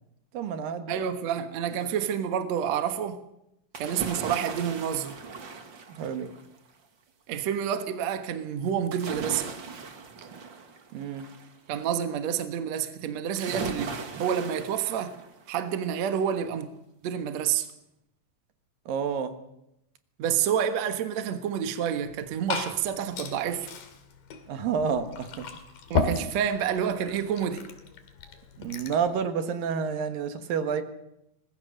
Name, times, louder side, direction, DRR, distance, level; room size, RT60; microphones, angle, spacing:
voice 1, 0.3-1.0 5.9-6.3 10.2-10.3 10.9-11.3 18.9-19.3 24.5-25.5 28.6-30.8, right 6 dB, 75° right, 3.2 m, -29 dB
voice 2, 0.9-3.2 3.8-5.1 7.3-9.5 11.7-15.1 15.5-16.7 17.0-17.7 20.2-23.7 25.9-27.7, right 8 dB, 60° right, 2.3 m, -29 dB
sound 1, 3.7-6.6 8.9-11.5 13.4-15.6 16.1-16.2, right 4 dB, 40° right, 2.1 m, -38 dB
Glass / Fill (with liquid), 22.0-29.1, left 5 dB, 75° left, 3.9 m, -35 dB
24.5 x 20.5 x 6.6 m
omnidirectional pair, 4.1 m